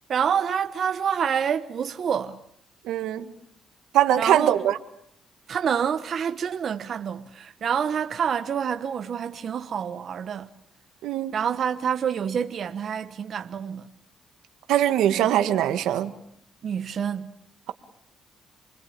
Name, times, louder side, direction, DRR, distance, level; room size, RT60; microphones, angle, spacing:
voice 1, 0.1-2.4 4.2-4.5 5.5-10.5 11.3-13.9 16.6-17.4, right 7 dB, 55° right, 1.1 m, -27 dB
voice 2, 2.8-3.3 3.9-4.7 11.0-11.3 14.7-16.1, right 11 dB, 90° right, 1.7 m, -22 dB
28.5 x 21.5 x 8.7 m
cardioid pair, 90°, 0 cm